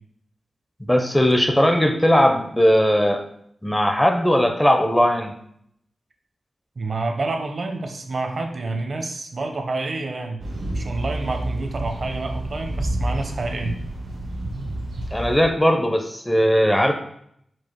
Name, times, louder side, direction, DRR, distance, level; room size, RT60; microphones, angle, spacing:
voice 1, 0.9-3.2 3.6-5.4 15.1-16.9, equal, 10° left, 5 dB, 0.4 m, -18 dB
voice 2, 6.8-10.4 10.7-13.8, right 3 dB, 55° right, 4 dB, 0.6 m, -28 dB
sound 1, 10.4-15.5, right 1 dB, 90° right, 0.9 m, -29 dB
4.6 x 2.5 x 4.4 m, 0.70 s
wide cardioid pair, 95°, 0 cm